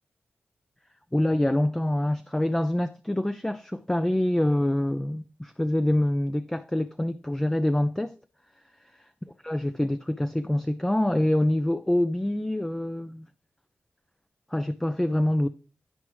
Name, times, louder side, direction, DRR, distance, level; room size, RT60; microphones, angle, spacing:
voice 1, 1.1-8.2 9.4-13.3 14.5-15.5, left 1 dB, 10° left, 0.3 m, -25 dB
11.0 x 4.7 x 3.1 m
cardioid pair, 60°, 5 cm